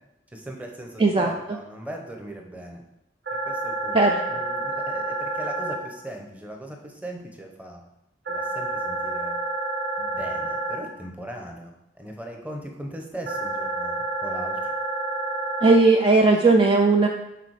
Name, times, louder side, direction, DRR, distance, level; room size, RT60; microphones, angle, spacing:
voice 1, 0.3-2.8 3.5-7.8 8.3-9.4 10.0-14.7, right 1 dB, 10° right, 2 dB, 0.9 m, -38 dB
sound 1, 3.3-5.8 8.3-10.8 13.3-15.8, right 2 dB, 70° right, 1.4 m, -29 dB
voice 2, 15.6-17.1, right 3 dB, 30° right, 3 dB, 0.4 m, -17 dB
6.8 x 4.2 x 4.8 m, 0.88 s
head